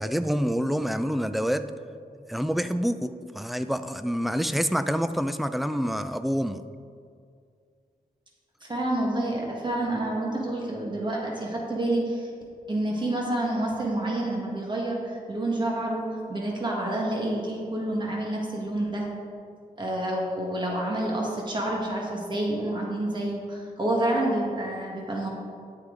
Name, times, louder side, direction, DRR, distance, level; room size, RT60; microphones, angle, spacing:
voice 1, 0.0-1.6 2.3-6.6, equal, ahead, 10 dB, 0.3 m, -27 dB
voice 2, 8.6-12.3 12.7-16.0 16.3-19.1 19.8-25.3, right 1 dB, 30° right, -2 dB, 1.6 m, -28 dB
10.0 x 8.8 x 3.9 m, 2.3 s
wide cardioid pair, 165°, 16 cm